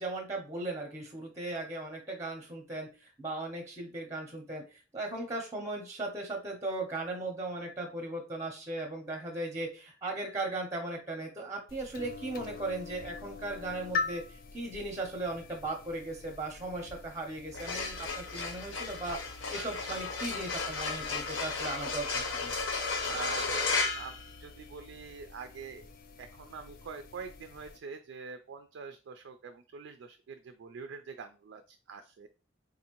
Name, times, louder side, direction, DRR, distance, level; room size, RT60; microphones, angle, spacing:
voice 1, 0.0-19.2 19.5-22.5, right 2 dB, 15° right, 3 dB, 0.6 m, -37 dB
sound 1, 11.7-27.8, left 4 dB, 50° left, 0.4 m, -44 dB
sound 2, 17.4-24.9, left 4 dB, 85° left, 0.8 m, -34 dB
voice 2, 23.1-32.3, right 5 dB, 70° right, 7 dB, 0.3 m, -45 dB
3.9 x 2.6 x 2.9 m, 0.34 s
head